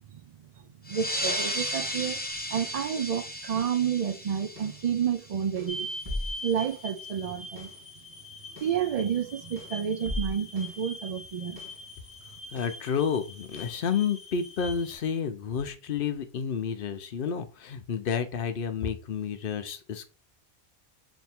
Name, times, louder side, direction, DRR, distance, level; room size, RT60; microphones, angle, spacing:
voice 1, 0.6-2.2 2.5-5.9 6.4-7.7 8.6-11.6, right 8 dB, 70° right, 0.3 m, -30 dB
sound 1, 0.9-5.9, equal, 10° left, 0.5 m, -34 dB
sound 2, 2.3-2.9 3.6-3.9 4.6-4.9 5.6-6.9 7.6-7.9 8.6-8.9 9.6-10.9 11.6-11.9 12.6-12.9 13.6-13.9, left 1 dB, 15° right, 1.3 m, -39 dB
sound 3, 5.7-15.0, left 1 dB, 30° left, 1.0 m, -42 dB
voice 2, 12.5-20.1, left 7 dB, 60° left, 0.8 m, -30 dB
3.4 x 2.7 x 4.2 m
omnidirectional pair, 1.2 m